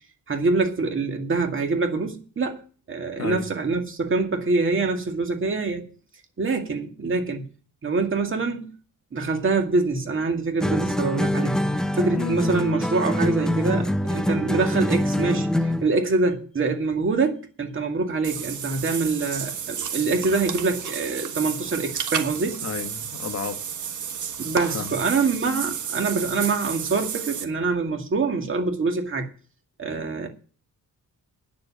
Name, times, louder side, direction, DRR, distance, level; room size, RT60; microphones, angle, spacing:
voice 1, 0.3-2.6 2.9-5.9 6.4-7.4 7.8-8.7 9.1-11.6 11.9-15.5 15.8-22.6 24.4-29.3 29.8-30.3, right 3 dB, 35° right, 2.2 m, -25 dB
sound 1, 10.6-15.9, left 1 dB, ahead, 0.5 m, -24 dB
Water / Bathtub (filling or washing), 18.2-27.4, right 8 dB, 60° right, 1.4 m, -32 dB
voice 2, 22.6-23.6 24.7-24.9, left 6 dB, 50° left, 1.5 m, -31 dB
9.5 x 7.6 x 8.6 m
wide cardioid pair, 145°, 34 cm